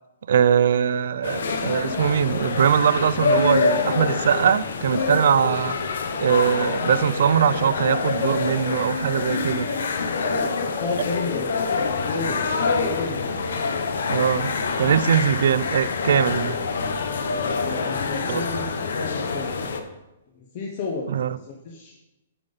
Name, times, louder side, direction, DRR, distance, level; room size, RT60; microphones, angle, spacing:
voice 1, 0.3-5.8 6.2-9.7 14.1-14.5 14.8-16.6 18.3-18.4 21.1-21.3, right 8 dB, 65° right, 15 dB, 0.4 m, -21 dB
sound 1, 1.2-19.8, left 4 dB, 70° left, 0.8 m, -26 dB
voice 2, 10.1-13.3 17.3-19.6 20.4-21.9, left 3 dB, 35° left, -1 dB, 0.9 m, -32 dB
8.9 x 4.0 x 5.2 m, 0.95 s
hypercardioid pair, 170°, 0 cm